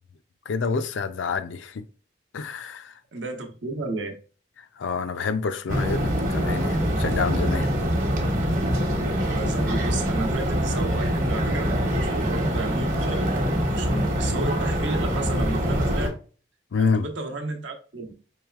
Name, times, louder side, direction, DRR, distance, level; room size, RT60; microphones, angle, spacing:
voice 1, 0.5-1.8 2.3-2.9 4.8-7.7 16.7-17.1, left 5 dB, 85° left, 0.4 m, -27 dB
voice 2, 3.1-4.2 9.2-16.1 16.8-18.1, right 3 dB, 75° right, 0.9 m, -33 dB
sound 1, 5.7-16.1, equal, 45° right, 1.0 m, -24 dB
4.8 x 3.2 x 2.3 m
head